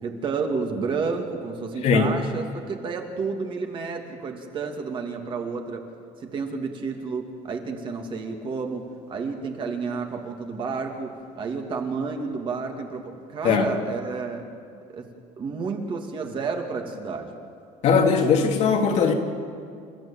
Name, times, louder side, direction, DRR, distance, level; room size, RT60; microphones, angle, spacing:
voice 1, 0.0-5.8 6.2-14.5 14.9-17.4, right 4 dB, 35° right, 3 dB, 2.5 m, -31 dB
voice 2, 17.8-19.1, left 5 dB, 50° left, 3 dB, 2.6 m, -19 dB
29.5 x 14.0 x 8.9 m, 2.3 s
cardioid pair, 160°, 14 cm